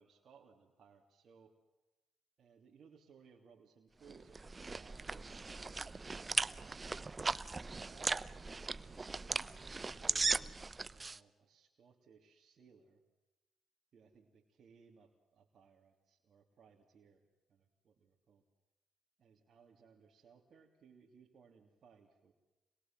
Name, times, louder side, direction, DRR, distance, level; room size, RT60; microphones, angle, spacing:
voice 1, 0.0-1.5 2.4-7.1 7.6-8.2 8.8-10.6 10.9-13.0 13.9-18.4 19.2-22.3, right 6 dB, 65° right, -1 dB, 3.1 m, -64 dB
sound 1, 4.1-11.2, right 3 dB, 35° right, 0.9 m, -38 dB
27.0 x 20.5 x 7.6 m, 1.1 s
supercardioid pair, 60°, 0 cm